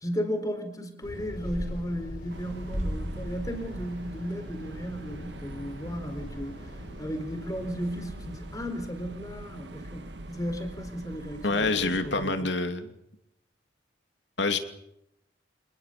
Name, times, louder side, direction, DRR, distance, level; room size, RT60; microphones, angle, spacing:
voice 1, 0.0-12.5, equal, 20° left, 7 dB, 4.4 m, -35 dB
sound 1, 1.0-8.6, equal, 55° left, 7.5 m, -42 dB
sound 2, 2.3-12.3, right 1 dB, 65° right, 1.7 m, -43 dB
sound 3, 2.7-8.5 8.7-8.8, equal, 40° right, 2.5 m, -39 dB
voice 2, 11.4-12.9 14.4-14.6, left 3 dB, 70° left, 7 dB, 2.8 m, -26 dB
27.5 x 20.5 x 6.9 m, 0.78 s
head